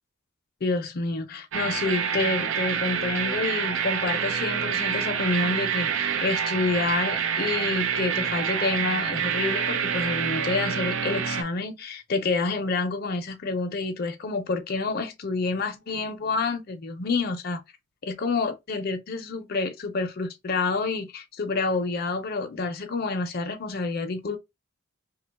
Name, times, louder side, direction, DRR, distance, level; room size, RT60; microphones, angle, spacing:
voice 1, 0.6-17.6 18.0-24.4, left 3 dB, 50° left, 0.5 m, -28 dB
sound 1, 1.5-11.4, right 7 dB, 70° right, 0.5 m, -27 dB
2.8 x 2.2 x 4.0 m
head